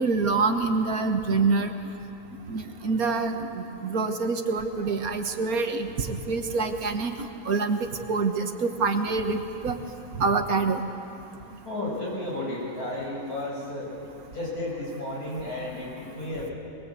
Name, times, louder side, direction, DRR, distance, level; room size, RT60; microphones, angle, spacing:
voice 1, 0.0-1.7 2.5-3.3 3.8-5.9 6.3-7.1 7.5-7.8 8.1-9.7 10.2-10.8, right 4 dB, 70° right, 6 dB, 1.8 m, -25 dB
voice 2, 11.7-13.9 14.3-16.5, left 1 dB, 75° left, -4 dB, 7.1 m, -33 dB
23.0 x 21.5 x 8.4 m, 2.6 s
omnidirectional pair, 1.6 m